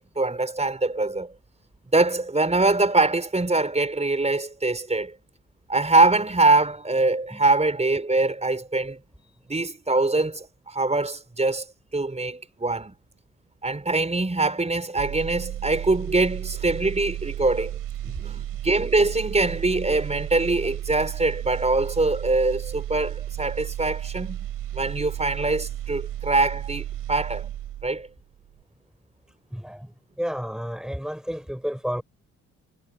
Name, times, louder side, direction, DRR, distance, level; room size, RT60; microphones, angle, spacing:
voice 1, 0.0-1.3 1.9-5.1 5.7-9.0 9.5-11.6 11.9-12.9 13.6-17.8 18.2-24.4 24.7-27.5 27.8-28.1, right 2 dB, 20° right, 4.9 m, -23 dB
sound 1, 15.0-28.1 28.4-28.6, right 12 dB, 70° right, 6.9 m, -33 dB
voice 2, 18.0-18.5 29.5-32.0, equal, ahead, 5.6 m, -32 dB
hypercardioid pair, 45°, 33 cm